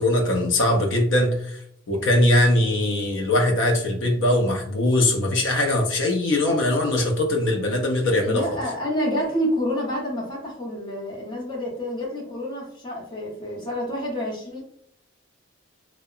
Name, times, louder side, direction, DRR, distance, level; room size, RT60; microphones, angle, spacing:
voice 1, 0.0-1.6 1.9-8.6, left 1 dB, 70° left, 2 dB, 0.4 m, -21 dB
voice 2, 8.3-14.6, equal, 20° left, -4 dB, 0.7 m, -28 dB
2.7 x 2.0 x 2.3 m, 0.68 s
head